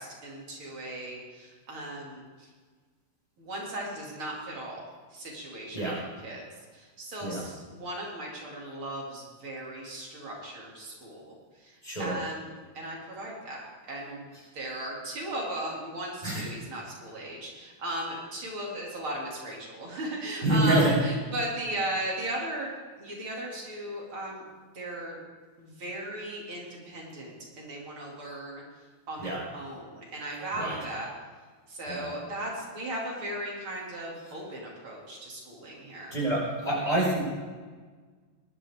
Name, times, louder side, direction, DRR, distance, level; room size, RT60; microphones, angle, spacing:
voice 1, 0.0-2.5 3.4-4.8 5.1-5.9 6.2-6.4 6.7-22.7 23.0-24.4 24.7-25.2 25.6-28.6 29.1-31.1 31.7-36.2, right 1 dB, 85° right, -3 dB, 3.6 m, -37 dB
voice 2, 11.8-12.1 16.2-16.4 20.4-20.9 29.2-29.4 30.5-30.8 31.9-32.1 36.1-37.2, right 1 dB, 20° left, -5 dB, 5.4 m, -26 dB
19.0 x 11.5 x 3.6 m, 1.4 s
omnidirectional pair, 2.3 m